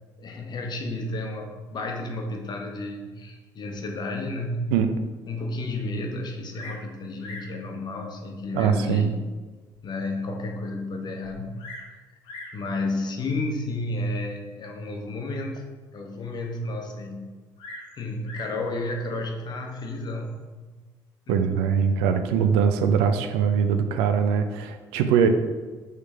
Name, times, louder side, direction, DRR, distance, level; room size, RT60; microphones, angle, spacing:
voice 1, 0.2-4.7 5.3-9.2 9.8-11.5 11.9-12.2 12.5-17.3 18.0-20.7 21.3-21.4 25.2-25.3, left 2 dB, 45° left, 2 dB, 0.8 m, -32 dB
Bird vocalization bird call bird song, 6.5-6.9 7.2-7.6 8.4-8.5 9.1-9.2 9.7-9.8 10.0-10.1 11.2-11.9 12.2-12.6 13.6-13.9 17.6-18.6 19.7-20.1, left 2 dB, 70° left, 0.9 m, -42 dB
voice 2, 8.5-9.1 21.3-25.3, right 7 dB, 80° right, 8 dB, 0.4 m, -22 dB
3.2 x 3.2 x 4.6 m, 1.3 s
hypercardioid pair, 60°, 10 cm